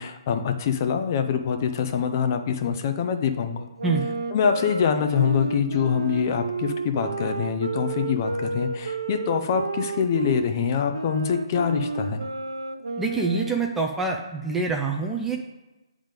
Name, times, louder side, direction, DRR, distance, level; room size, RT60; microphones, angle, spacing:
voice 1, 0.0-3.7 4.3-12.3, left 7 dB, 35° left, 7 dB, 0.8 m, -25 dB
sound 1, 3.8-10.5 10.9-13.9, right 3 dB, 70° right, 0.6 m, -31 dB
voice 2, 13.0-15.4, right 3 dB, 5° right, 1 dB, 0.6 m, -26 dB
8.7 x 3.7 x 5.1 m, 1.1 s
figure-of-eight pair, 140°, 3 cm